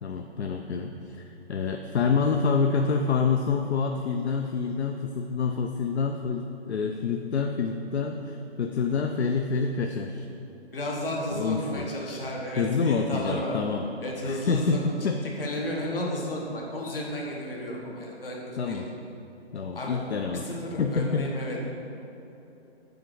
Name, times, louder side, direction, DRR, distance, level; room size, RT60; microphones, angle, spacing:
voice 1, 0.0-10.3 11.3-12.2 12.6-13.9 14.2-15.2 18.6-18.9 19.5-20.4 20.8-21.3, left 5 dB, 75° left, 4 dB, 0.5 m, -27 dB
voice 2, 10.7-13.6 14.0-15.1 15.4-18.4 18.6-18.8 19.7-20.0 20.3-21.6, left 1 dB, 55° left, -2 dB, 1.4 m, -33 dB
7.2 x 3.9 x 4.6 m, 2.9 s
hypercardioid pair, 170°, 33 cm